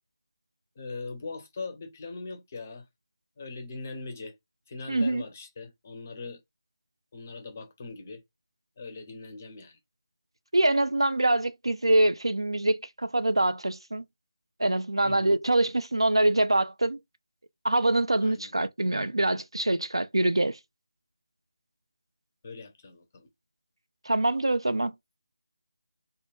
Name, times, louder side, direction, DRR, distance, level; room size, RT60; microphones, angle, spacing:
voice 1, 0.8-2.9 3.4-4.4 4.7-6.4 7.1-8.2 8.8-9.8 15.0-15.3 18.2-18.5 18.9-19.0 22.4-23.3, left 3 dB, 30° left, 0.5 m, -41 dB
voice 2, 4.9-5.2 10.5-14.0 14.6-17.0 17.6-20.6 24.1-24.9, right 1 dB, 80° right, 0.3 m, -24 dB
2.2 x 2.1 x 2.9 m
figure-of-eight pair, 160°, 3 cm